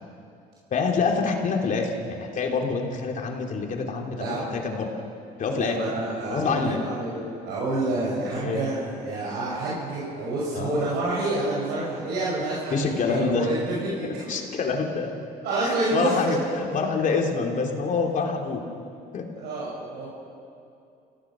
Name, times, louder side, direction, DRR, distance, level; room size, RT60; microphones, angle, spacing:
voice 1, 0.7-4.9 5.4-5.8 6.3-6.8 8.4-8.6 10.5-10.8 12.7-13.5 14.0-15.1 15.6-16.4 16.7-18.6 19.1-19.3, left 5 dB, 50° left, 2 dB, 3.0 m, -26 dB
voice 2, 4.2-4.7 5.5-14.3 15.4-16.2 19.3-20.1, right 2 dB, 80° right, -6 dB, 6.1 m, -28 dB
30.0 x 16.5 x 6.3 m, 2.6 s
cardioid pair, 110°, 17 cm